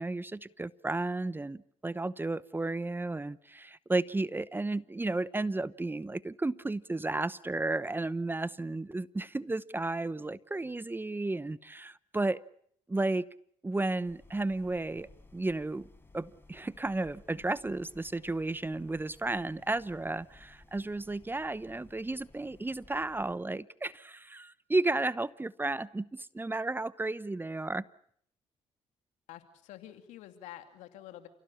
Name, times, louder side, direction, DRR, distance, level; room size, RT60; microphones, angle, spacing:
voice 1, 0.0-12.4 12.9-13.3 13.6-15.9 16.1-27.8, right 2 dB, 15° right, 18 dB, 0.9 m, -33 dB
sound 1, 14.0-23.4, left 2 dB, 20° left, 4.8 m, -59 dB
voice 2, 29.3-31.3, left 13 dB, 85° left, 8 dB, 2.7 m, -48 dB
29.5 x 17.0 x 8.6 m, 0.65 s
supercardioid pair, 60°, 12 cm